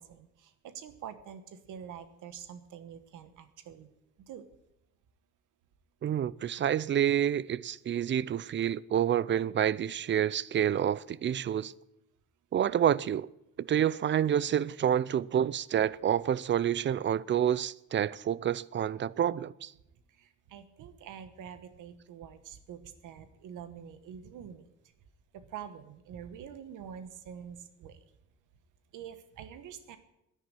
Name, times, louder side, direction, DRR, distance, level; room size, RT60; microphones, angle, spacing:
voice 1, 0.0-3.9 4.2-4.4 20.1-24.7 25.3-28.0 28.9-30.0, right 8 dB, 85° right, 1.3 m, -46 dB
voice 2, 6.0-11.7 12.5-13.3 13.6-19.7, right 10 dB, 40° right, 0.5 m, -28 dB
10.5 x 9.8 x 9.0 m
cardioid pair, 90°, 30 cm